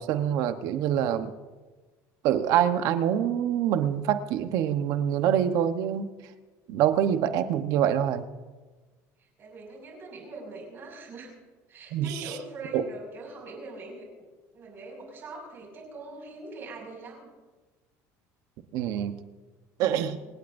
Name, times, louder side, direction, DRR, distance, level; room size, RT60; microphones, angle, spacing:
voice 1, 0.0-1.3 2.2-6.1 6.7-8.3 11.9-12.1 12.7-12.8 18.7-19.2 19.8-20.2, right 10 dB, 60° right, 9 dB, 1.0 m, -25 dB
voice 2, 9.2-11.3 11.7-14.1 14.5-17.3, right 2 dB, 35° right, 0 dB, 5.9 m, -43 dB
26.5 x 17.5 x 2.6 m, 1.3 s
cardioid pair, 165°, 7 cm